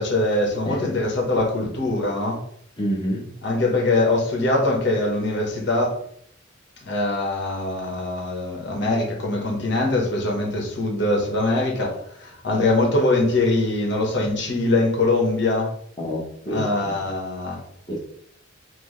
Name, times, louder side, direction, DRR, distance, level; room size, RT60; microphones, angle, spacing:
voice 1, 0.0-2.4 3.4-6.0 6.8-15.7 16.5-17.6, left 2 dB, 65° left, -1 dB, 1.2 m, -22 dB
voice 2, 2.8-3.3 16.0-17.0 17.9-18.0, equal, 25° left, -5 dB, 1.0 m, -28 dB
6.0 x 2.0 x 3.2 m, 0.66 s
head